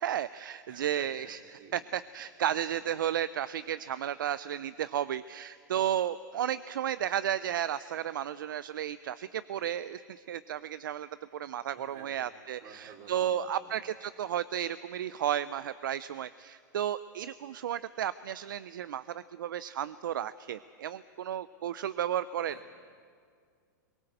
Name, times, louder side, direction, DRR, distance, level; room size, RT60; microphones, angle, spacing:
voice 1, 0.0-1.4 1.7-22.5, right 10 dB, 80° right, 16 dB, 0.5 m, -33 dB
voice 2, 0.7-1.3 1.6-1.8 11.7-12.2 12.6-13.7 22.5-22.7, right 6 dB, 45° right, 1 dB, 4.2 m, -51 dB
22.5 x 18.0 x 8.0 m, 2.2 s
hypercardioid pair, 115°, 11 cm